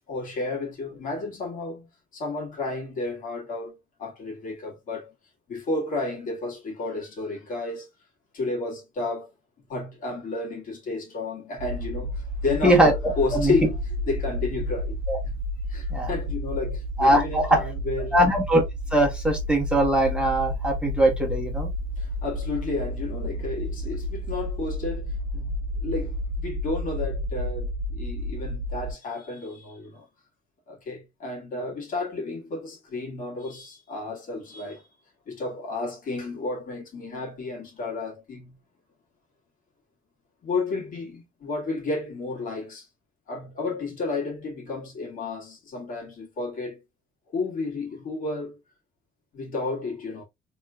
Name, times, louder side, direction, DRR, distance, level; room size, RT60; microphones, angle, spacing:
voice 1, 0.1-5.1 5.5-7.9 8.3-9.3 9.7-15.4 15.7-18.1 22.0-30.1 30.7-34.8 35.3-38.5 40.4-42.9 43.3-46.8 47.3-48.6 49.3-50.2, left 3 dB, 55° left, 1.8 m, -32 dB
sound 1, 11.6-28.9, left 1 dB, 40° right, 1.0 m, -31 dB
voice 2, 17.0-17.6 18.1-18.6 18.9-21.7, right 1 dB, 5° right, 1.1 m, -21 dB
4.2 x 3.1 x 2.4 m
cardioid pair, 110°, 17 cm